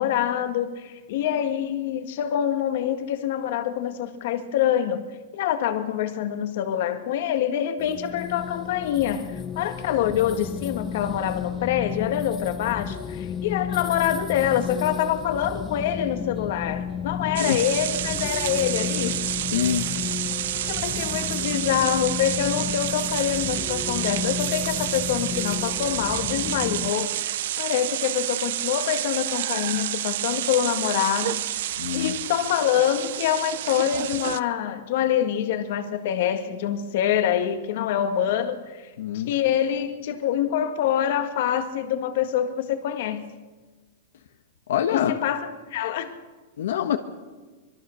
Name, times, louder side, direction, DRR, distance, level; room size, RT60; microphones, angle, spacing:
voice 1, 0.0-5.1 5.3-19.2 20.7-38.9 39.1-43.3 44.9-46.2, left 10 dB, 55° left, 1.8 m, -25 dB
sound 1, 7.8-26.9, left 8 dB, 20° left, 0.7 m, -33 dB
sound 2, 17.4-34.4, right 13 dB, 60° right, 0.7 m, -29 dB
voice 2, 19.5-19.9 31.8-32.2 39.0-39.3 44.7-45.2 46.6-47.0, left 10 dB, 75° left, 1.4 m, -25 dB
25.0 x 22.0 x 6.6 m
supercardioid pair, 170°, 0 cm